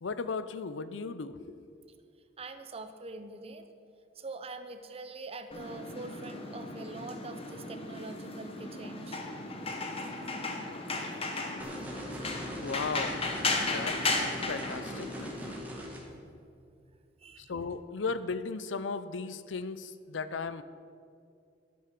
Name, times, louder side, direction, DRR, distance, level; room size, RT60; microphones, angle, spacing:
voice 1, 0.0-1.6 12.6-13.3 13.6-14.2 14.4-15.3 17.4-20.6, left 4 dB, 85° left, 14 dB, 0.6 m, -36 dB
voice 2, 2.4-3.7 4.2-9.2 13.6-13.7 15.7-16.4 17.2-17.5, right 3 dB, 35° right, 9 dB, 0.7 m, -44 dB
sound 1, 5.5-15.6, left 3 dB, 30° left, 1.2 m, -35 dB
sound 2, 11.6-16.0, equal, 10° right, 2.0 m, -41 dB
12.0 x 8.6 x 5.9 m, 2.4 s
head